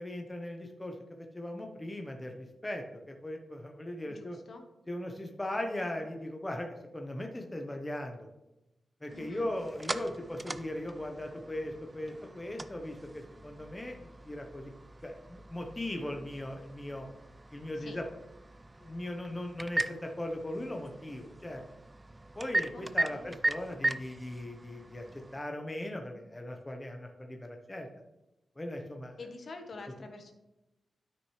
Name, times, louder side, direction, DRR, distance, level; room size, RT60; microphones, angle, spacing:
voice 1, 0.0-4.4 4.9-8.2 9.0-14.0 14.2-14.7 15.0-17.1 17.5-18.1 18.8-21.6 22.4-27.9 28.6-29.2, left 1 dB, 15° left, 3 dB, 0.9 m, -39 dB
voice 2, 4.1-4.6 9.1-9.5 17.7-18.0 22.7-23.3 29.2-30.3, left 3 dB, 50° left, 5 dB, 1.2 m, -47 dB
sound 1, 9.1-25.4, right 1 dB, 15° right, 0.3 m, -39 dB
12.0 x 6.5 x 3.2 m, 0.95 s
wide cardioid pair, 150°, 0 cm